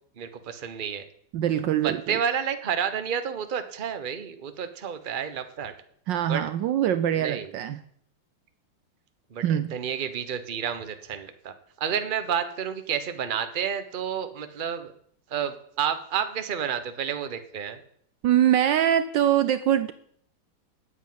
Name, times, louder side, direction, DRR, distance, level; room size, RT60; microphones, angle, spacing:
voice 1, 0.2-1.1 1.8-5.7 6.3-6.4 7.2-7.5 9.3-9.4 9.7-14.9 15.3-17.8, right 8 dB, 35° right, 9 dB, 0.9 m, -30 dB
voice 2, 1.3-2.2 6.1-7.8 9.4-9.7 18.2-19.9, right 10 dB, 70° right, 13 dB, 1.2 m, -23 dB
9.6 x 8.4 x 9.5 m, 0.65 s
omnidirectional pair, 2.3 m